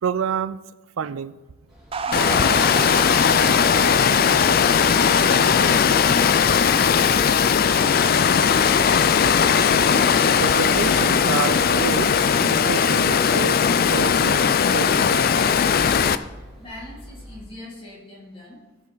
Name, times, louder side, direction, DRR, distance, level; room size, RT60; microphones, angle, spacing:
voice 1, 0.0-0.6 1.0-1.3 10.4-15.5, right 7 dB, 85° right, 16 dB, 0.4 m, -29 dB
sound 1, 1.7-17.4, equal, ahead, 2.9 m, -41 dB
sound 2, 1.9-8.4, right 5 dB, 25° right, 0.4 m, -34 dB
Water, 2.1-16.2, left 7 dB, 45° left, 0.3 m, -18 dB
voice 2, 16.6-18.6, left 1 dB, 25° left, -5 dB, 2.9 m, -41 dB
16.0 x 5.4 x 3.9 m, 1.2 s
head